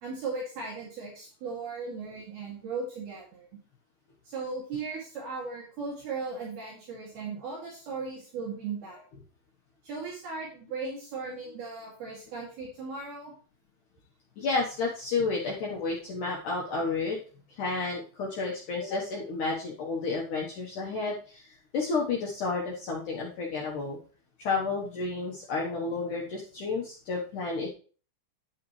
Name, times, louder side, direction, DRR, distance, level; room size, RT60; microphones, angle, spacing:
voice 1, 0.0-3.5 4.3-9.0 9.8-13.3, right 4 dB, 55° right, -4 dB, 3.9 m, -37 dB
voice 2, 14.4-17.2 17.6-24.0 24.4-27.7, left 4 dB, 80° left, -3 dB, 1.8 m, -31 dB
9.5 x 8.9 x 3.2 m, 0.40 s
omnidirectional pair, 5.6 m